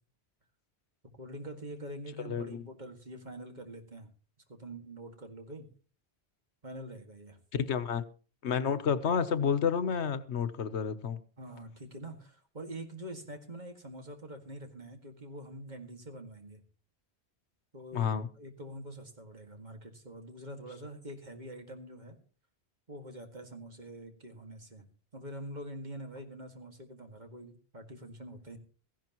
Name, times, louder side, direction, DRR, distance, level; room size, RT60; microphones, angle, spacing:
voice 1, 1.2-4.1 4.5-5.7 6.6-7.4 11.4-16.6 17.7-22.2 22.9-24.8 25.1-28.6, right 1 dB, 45° right, 2.2 m, -45 dB
voice 2, 2.2-2.6 7.5-8.0 8.4-11.2 17.9-18.3, left 7 dB, 85° left, 1.2 m, -30 dB
16.5 x 14.5 x 3.0 m
omnidirectional pair, 1.1 m